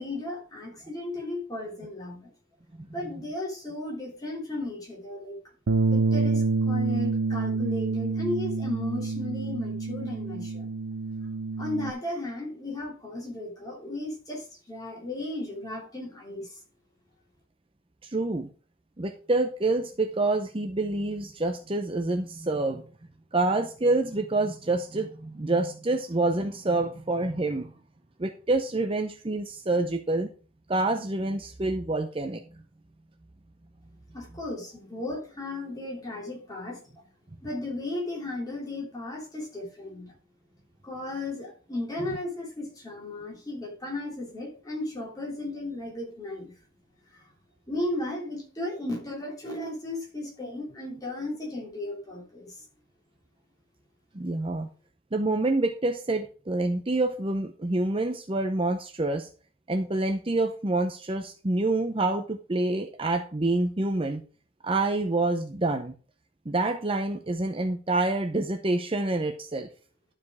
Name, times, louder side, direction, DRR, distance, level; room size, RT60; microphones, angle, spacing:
voice 1, 0.0-2.3 2.9-5.4 5.9-10.7 11.6-16.6 34.1-36.8 37.4-40.1 40.8-46.5 47.1-47.3 47.7-52.6, left 2 dB, 20° left, -2 dB, 3.1 m, -35 dB
Bass guitar, 5.7-11.9, right 3 dB, 80° right, 0.6 m, -27 dB
voice 2, 18.0-18.5 19.0-22.8 23.3-27.7 28.2-30.3 30.7-32.4 54.1-54.7 55.1-59.3 59.7-64.2 64.6-65.9 66.5-69.7, right 2 dB, 25° right, 6 dB, 0.6 m, -27 dB
12.0 x 5.0 x 4.8 m, 0.38 s
head